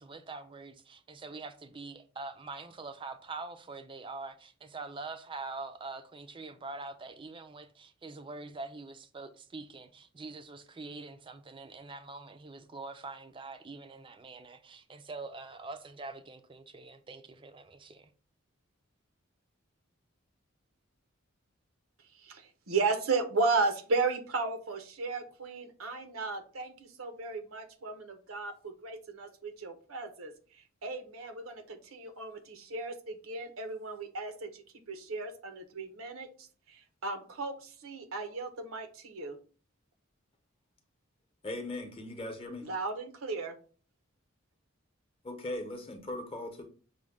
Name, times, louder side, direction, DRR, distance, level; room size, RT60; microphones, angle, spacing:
voice 1, 0.0-18.1, right 3 dB, 25° right, 0.4 m, -44 dB
voice 2, 22.1-39.4 42.6-43.6, right 3 dB, 80° right, 0.8 m, -35 dB
voice 3, 41.4-42.7 45.2-46.6, left 1 dB, 25° left, 0.8 m, -39 dB
6.1 x 2.2 x 3.5 m
head